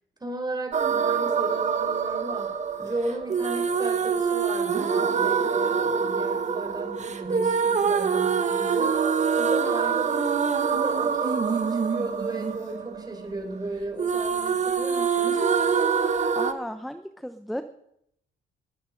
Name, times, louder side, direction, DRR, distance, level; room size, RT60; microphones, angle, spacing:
voice 1, 0.2-15.5, right 2 dB, 20° right, 5 dB, 4.2 m, -35 dB
sound 1, 0.7-13.7 14.0-16.5, right 6 dB, 35° right, 1.1 m, -25 dB
voice 2, 16.3-17.6, equal, ahead, 10 dB, 0.8 m, -34 dB
21.0 x 8.9 x 5.2 m, 0.75 s
cardioid pair, 90°, 20 cm